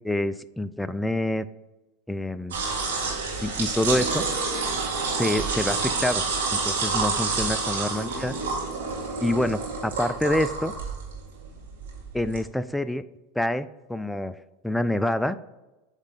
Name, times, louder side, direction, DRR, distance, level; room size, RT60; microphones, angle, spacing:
voice 1, 0.0-1.5 2.1-2.5 3.4-4.2 5.1-6.2 6.5-8.3 9.2-10.7 12.1-13.0 13.3-14.4 14.6-15.4, left 1 dB, 5° left, 13 dB, 0.3 m, -26 dB
sound 1, 2.5-12.4, right 4 dB, 85° right, 1.8 m, -28 dB
8.1 x 3.2 x 4.0 m, 1.1 s
hypercardioid pair, 100°, 0 cm